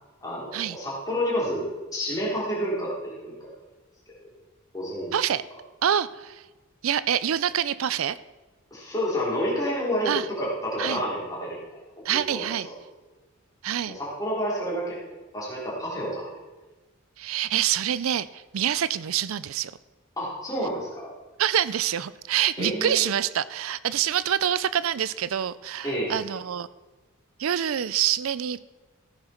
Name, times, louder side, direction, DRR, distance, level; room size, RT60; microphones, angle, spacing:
voice 1, 0.2-3.5 4.1-4.3 4.7-5.2 8.7-11.6 12.3-12.5 13.9-15.0 15.3-16.2 20.2-21.1 22.6-23.0 25.8-26.2, equal, 15° left, -6 dB, 3.7 m, -29 dB
voice 2, 5.1-5.4 5.8-6.4 6.8-8.2 10.1-10.3 10.8-11.0 12.0-12.7 13.6-14.0 17.2-19.7 21.4-26.7 27.4-28.6, right 10 dB, 70° right, 17 dB, 0.4 m, -26 dB
14.5 x 9.8 x 4.4 m, 1.2 s
head